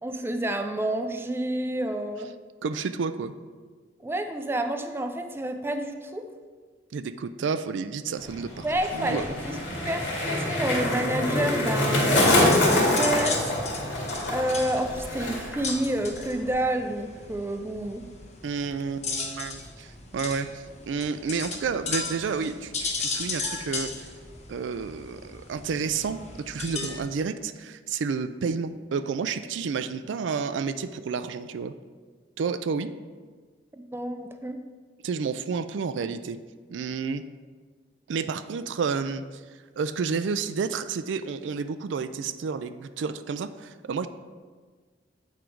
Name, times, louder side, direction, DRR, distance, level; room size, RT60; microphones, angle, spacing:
voice 1, 0.0-2.3 4.0-6.3 8.6-13.4 14.3-18.0 33.8-34.6, right 1 dB, 15° right, 6 dB, 0.5 m, -29 dB
voice 2, 2.6-3.3 6.9-8.7 8.9-9.2 18.4-24.1 24.5-31.7 32.4-32.9 35.0-36.4 36.7-37.2 38.1-39.4 39.8-44.1, right 5 dB, 75° right, 11 dB, 0.4 m, -30 dB
Skateboard, 8.2-15.7 16.0-16.5, left 1 dB, 85° left, 1.9 m, -25 dB
sound 1, 11.9-27.1, left 4 dB, 40° left, 1.1 m, -36 dB
8.2 x 4.9 x 4.5 m, 1.5 s
head